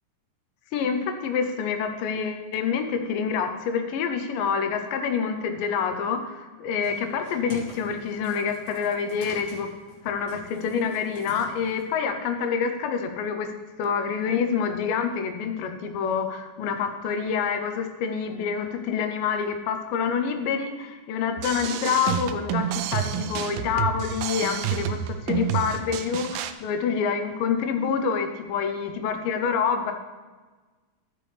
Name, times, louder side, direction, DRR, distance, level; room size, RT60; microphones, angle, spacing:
voice 1, 0.7-9.7 10.0-13.5 13.8-29.9, left 6 dB, 80° left, 6 dB, 2.4 m, -27 dB
sound 1, 6.8-11.9, left 1 dB, 40° left, 1.4 m, -46 dB
sound 2, 21.4-26.5, right 10 dB, 80° right, 2.2 m, -29 dB
13.0 x 6.2 x 3.3 m, 1.3 s
omnidirectional pair, 4.0 m